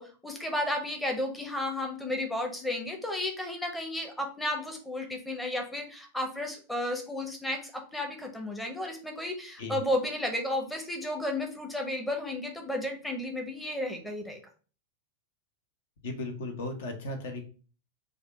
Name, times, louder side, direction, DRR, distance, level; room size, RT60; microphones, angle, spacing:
voice 1, 0.0-14.4, left 1 dB, 5° left, 2 dB, 0.7 m, -33 dB
voice 2, 16.0-17.4, left 2 dB, 60° left, 4 dB, 0.7 m, -36 dB
3.4 x 2.3 x 3.3 m, 0.37 s
figure-of-eight pair, 90°, 0 cm